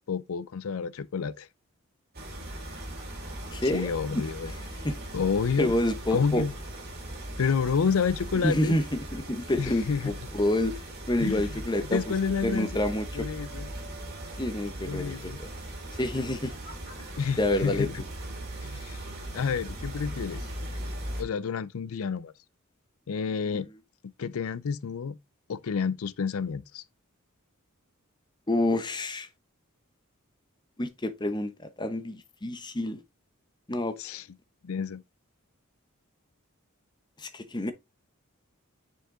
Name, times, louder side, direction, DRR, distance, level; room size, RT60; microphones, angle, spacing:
voice 1, 0.0-1.5 3.6-4.5 5.1-5.7 6.1-6.5 7.4-8.8 9.6-10.1 11.2-12.8 13.1-13.7 14.8-15.4 17.2-18.0 18.6-19.0 19.3-20.4 21.2-22.3 23.1-23.7 24.2-25.2 25.5-26.8 34.0-34.2 34.6-35.0, left 6 dB, 80° left, 0.5 m, -29 dB
sound 1, 2.1-21.2, right 1 dB, 45° right, 2.4 m, -39 dB
voice 2, 3.5-3.9 4.8-5.0 5.6-6.4 8.4-12.1 12.4-13.3 14.4-15.5 16.0-16.5 17.4-17.9 23.5-23.6 28.5-29.3 30.8-33.0 33.7-34.0 37.2-37.7, left 1 dB, 20° left, 0.8 m, -28 dB
6.7 x 4.8 x 3.7 m
head